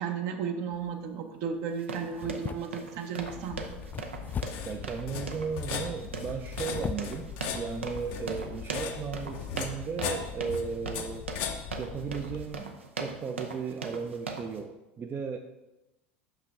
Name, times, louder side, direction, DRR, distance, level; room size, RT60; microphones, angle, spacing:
voice 1, 0.0-3.6, right 6 dB, 55° right, 5 dB, 0.8 m, -34 dB
sound 1, 0.7-1.1 2.1-3.0 3.9-4.8 6.4-7.2 7.8-7.9 8.4-8.5, left 7 dB, 30° left, 0.3 m, -38 dB
sound 2, 1.7-14.6, right 4 dB, 90° right, 0.6 m, -40 dB
sound 3, 3.2-12.5, left 7 dB, 65° left, 0.7 m, -38 dB
voice 2, 4.7-11.3 11.8-15.4, right 6 dB, 30° right, 5 dB, 0.5 m, -36 dB
5.9 x 5.5 x 3.6 m, 1.0 s
hypercardioid pair, 80°, 6 cm